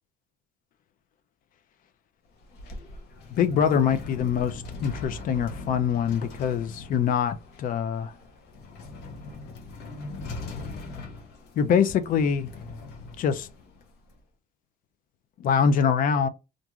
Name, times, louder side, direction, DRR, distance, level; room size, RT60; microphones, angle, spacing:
sound 1, 2.3-14.2, left 3 dB, 75° left, 0.8 m, -41 dB
voice 1, 3.3-8.1 11.6-12.5 13.2-13.5 15.4-16.3, left 7 dB, 55° left, 0.5 m, -24 dB
2.5 x 2.4 x 2.9 m
cardioid pair, 110°, 17 cm